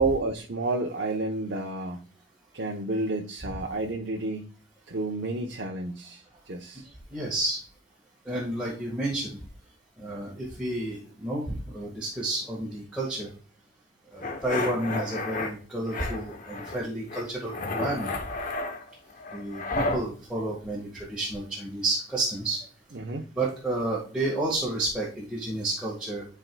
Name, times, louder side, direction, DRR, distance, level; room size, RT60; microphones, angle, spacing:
voice 1, 0.0-2.0 2.5-4.5 4.9-6.2 6.5-6.8 22.9-23.3, right 2 dB, 60° right, 0 dB, 0.8 m, -30 dB
voice 2, 7.1-7.6 8.2-9.3 10.0-13.3 14.1-18.1 19.3-22.6 23.3-26.2, right 2 dB, 5° right, -6 dB, 1.6 m, -31 dB
sound 1, 14.2-15.5 15.9-16.8 17.1-20.0, left 2 dB, 40° left, 0.8 m, -32 dB
11.5 x 4.7 x 2.3 m, 0.42 s
head